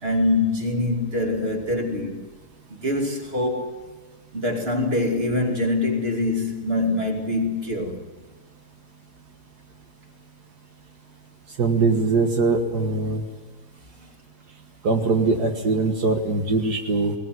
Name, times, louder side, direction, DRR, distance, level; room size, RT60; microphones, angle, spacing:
voice 1, 0.0-2.2 2.7-3.8 4.3-8.1, left 2 dB, 35° right, 2.8 m, -24 dB
voice 2, 11.6-13.2 14.8-17.1, right 3 dB, 75° right, 2.0 m, -22 dB
21.0 x 18.0 x 9.3 m
omnidirectional pair, 1.7 m